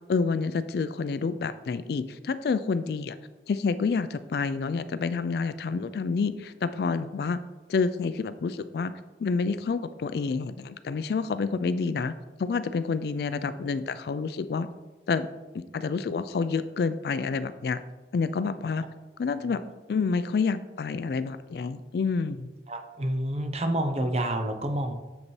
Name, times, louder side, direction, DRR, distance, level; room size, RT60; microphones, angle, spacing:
voice 1, 0.1-3.2 3.5-7.4 7.7-8.9 9.2-12.1 12.4-14.7 15.1-15.3 15.5-17.8 18.1-18.9 19.2-19.6 19.9-22.5, left 4 dB, 65° left, 13 dB, 0.3 m, -28 dB
voice 2, 22.7-24.9, right 1 dB, 35° right, 5 dB, 0.6 m, -28 dB
7.0 x 5.1 x 3.2 m, 1.1 s
head